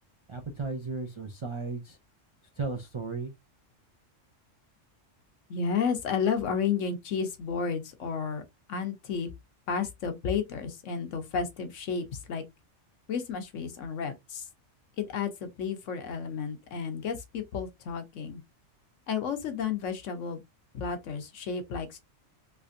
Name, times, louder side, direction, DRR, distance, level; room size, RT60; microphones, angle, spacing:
voice 1, 0.3-2.0 2.6-3.3, right 3 dB, 50° right, 0.3 m, -35 dB
voice 2, 5.5-8.4 8.7-9.3 9.7-12.4 13.1-14.5 15.0-18.4 19.1-20.4 20.7-22.0, left 6 dB, 75° left, 1.1 m, -32 dB
3.4 x 3.2 x 2.5 m
omnidirectional pair, 1.3 m